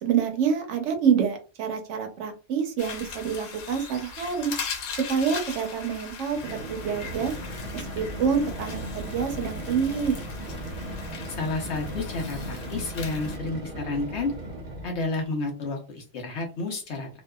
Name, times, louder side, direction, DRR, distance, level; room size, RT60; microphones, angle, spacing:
voice 1, 0.0-4.5 4.9-7.3 7.7-10.2, right 7 dB, 70° right, 6 dB, 0.9 m, -27 dB
sound 1, 2.8-13.4, left 5 dB, 90° left, 1.1 m, -39 dB
sound 2, 6.3-15.1, right 1 dB, 40° right, 0.8 m, -37 dB
voice 2, 11.3-14.3 14.8-17.1, left 3 dB, 65° left, 2 dB, 1.0 m, -30 dB
2.7 x 2.4 x 2.2 m, 0.34 s
omnidirectional pair, 1.3 m